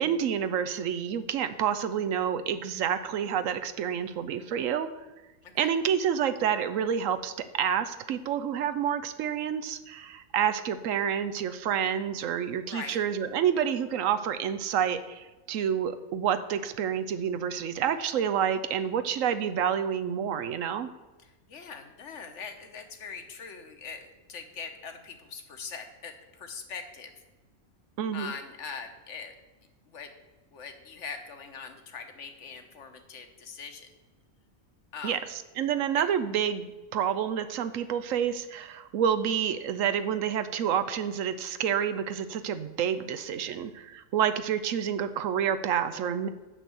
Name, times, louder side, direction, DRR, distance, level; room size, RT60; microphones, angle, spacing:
voice 1, 0.0-4.9 5.6-20.9 28.0-28.3 35.0-35.2 35.6-46.3, right 8 dB, 75° right, 10 dB, 1.0 m, -28 dB
voice 2, 5.4-5.8 12.7-13.0 21.2-27.1 28.1-29.4 29.9-30.1 30.5-33.9 34.9-35.2 35.9-36.0, left 5 dB, 65° left, 7 dB, 1.3 m, -42 dB
6.7 x 6.2 x 7.6 m, 1.1 s
omnidirectional pair, 1.4 m